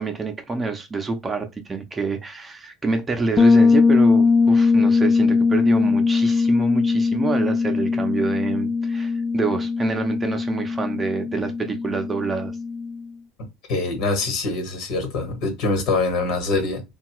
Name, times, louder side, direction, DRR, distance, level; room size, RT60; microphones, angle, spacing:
voice 1, 0.0-12.5, right 4 dB, 20° right, 0.6 m, -27 dB
Bass guitar, 3.4-13.0, left 4 dB, 30° left, 0.3 m, -20 dB
voice 2, 13.7-16.8, left 3 dB, 60° left, 1.3 m, -24 dB
2.8 x 2.3 x 3.0 m
supercardioid pair, 105°, 0 cm